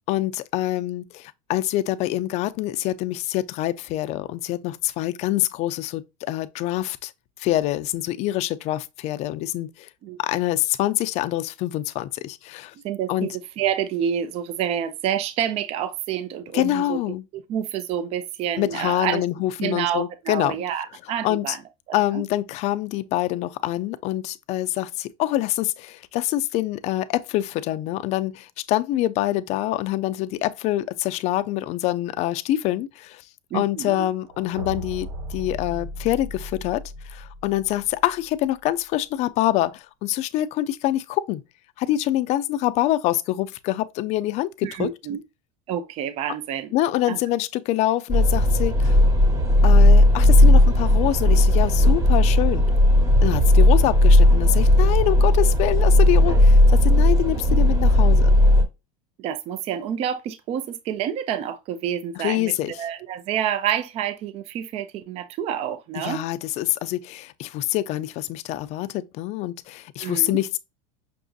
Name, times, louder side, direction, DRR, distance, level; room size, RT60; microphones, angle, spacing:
voice 1, 0.1-7.1 7.4-9.9 10.2-12.7 13.1-13.3 16.5-17.2 18.6-20.6 21.2-21.6 21.9-33.2 33.5-41.4 41.8-44.9 46.7-49.0 49.6-52.6 53.2-58.3 62.2-62.7 66.0-70.6, left 14 dB, 40° left, 0.4 m, -25 dB
voice 2, 12.8-17.0 17.3-19.2 19.6-21.6 21.9-22.2 33.5-34.1 44.6-45.2 45.7-46.7 47.1-47.2 59.2-66.2 70.0-70.4, right 9 dB, 35° right, 0.5 m, -28 dB
sound 1, 34.2-38.2, equal, 80° right, 1.6 m, -36 dB
sound 2, 48.1-58.6, left 1 dB, 20° right, 1.1 m, -16 dB
5.9 x 2.5 x 2.3 m
supercardioid pair, 140°, 17 cm